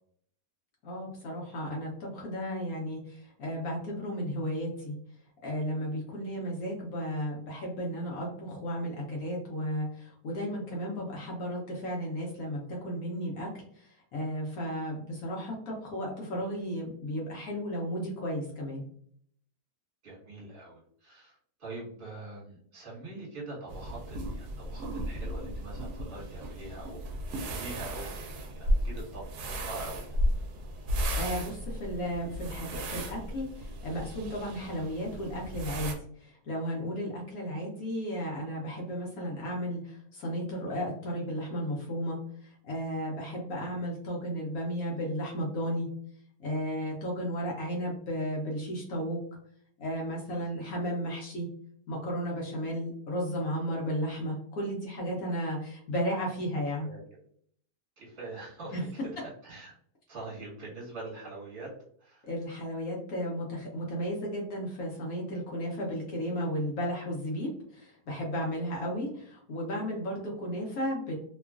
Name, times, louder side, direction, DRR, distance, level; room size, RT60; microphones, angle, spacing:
voice 1, 0.8-4.9 5.4-18.8 31.1-45.9 46.4-49.2 49.8-51.5 51.9-56.9 58.7-58.8 62.2-71.1, equal, 70° left, -2 dB, 1.1 m, -34 dB
voice 2, 20.0-30.2 50.3-50.8 55.3-55.4 56.8-57.0 58.0-59.8 60.1-61.7 62.0-62.3, right 2 dB, 35° right, -7 dB, 1.4 m, -44 dB
sound 1, 23.7-35.9, equal, 75° right, 1.0 m, -34 dB
2.9 x 2.3 x 2.3 m, 0.62 s
omnidirectional pair, 1.7 m